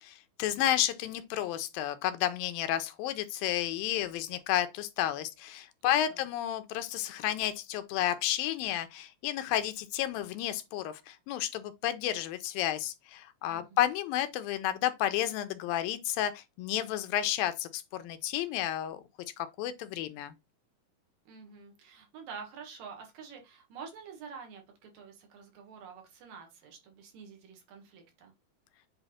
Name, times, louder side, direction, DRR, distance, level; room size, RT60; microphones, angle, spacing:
voice 1, 0.0-19.0 19.4-20.3, left 12 dB, 80° left, 2.3 m, -31 dB
voice 2, 5.9-6.2 13.5-13.8 21.3-28.3, right 6 dB, 65° right, 3.1 m, -48 dB
8.0 x 3.5 x 4.2 m
omnidirectional pair, 4.3 m